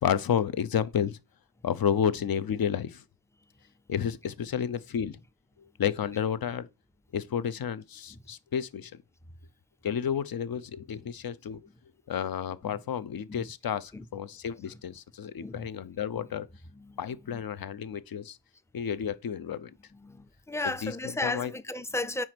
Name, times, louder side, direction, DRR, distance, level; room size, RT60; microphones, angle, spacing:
voice 1, 0.0-1.2 1.6-3.0 3.9-5.2 5.8-6.7 7.1-9.0 9.8-11.6 12.1-16.5 17.0-18.4 18.7-19.7 20.6-21.5, left 8 dB, 55° left, 0.7 m, -31 dB
voice 2, 20.0-22.2, left 2 dB, 5° left, 0.5 m, -34 dB
4.8 x 4.2 x 5.8 m
cardioid pair, 70°, 43 cm